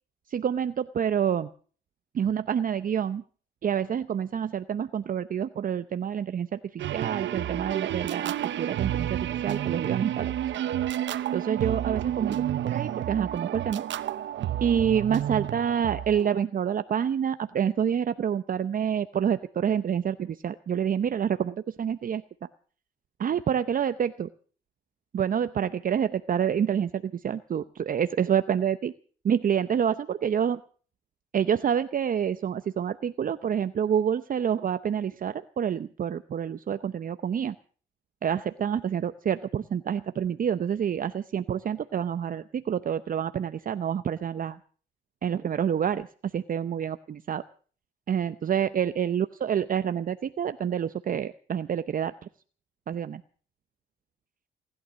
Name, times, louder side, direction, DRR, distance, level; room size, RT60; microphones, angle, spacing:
voice 1, 0.3-1.5 2.1-3.2 3.6-10.3 11.3-13.8 14.6-22.2 23.2-24.3 25.1-28.9 29.2-30.6 31.3-37.5 38.2-44.6 45.2-47.4 48.1-52.1 52.9-53.2, right 8 dB, 45° right, 12 dB, 0.7 m, -27 dB
sound 1, 6.8-16.3, right 11 dB, 70° right, 0.9 m, -30 dB
19.0 x 11.5 x 6.3 m, 0.43 s
cardioid pair, 90°, 20 cm